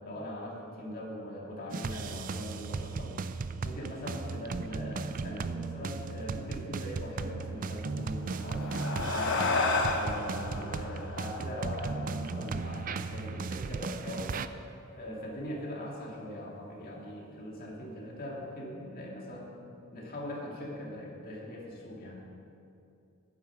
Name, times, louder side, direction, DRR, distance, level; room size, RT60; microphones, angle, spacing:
voice 1, 0.0-3.2 3.6-9.4 9.9-14.3 14.9-19.6 19.9-22.2, left 1 dB, 45° left, -3 dB, 2.2 m, -41 dB
sound 1, 1.7-14.5, right 4 dB, 40° right, 0.4 m, -36 dB
sound 2, 8.2-13.0, left 3 dB, 60° left, 1.1 m, -32 dB
9.7 x 9.4 x 6.0 m, 2.7 s
head